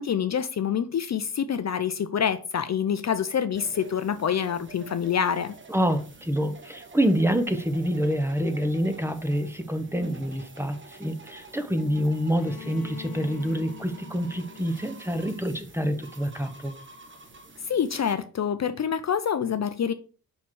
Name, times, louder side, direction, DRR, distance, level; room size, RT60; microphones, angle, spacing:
voice 1, 0.0-5.5 17.6-19.9, left 8 dB, 50° left, 0.5 m, -26 dB
sound 1, 3.5-18.1, right 3 dB, 35° right, 1.0 m, -48 dB
voice 2, 5.7-16.7, equal, 5° right, 0.8 m, -27 dB
Bowed string instrument, 12.4-16.2, left 15 dB, 70° left, 0.9 m, -46 dB
5.7 x 4.3 x 4.6 m
wide cardioid pair, 95°, 36 cm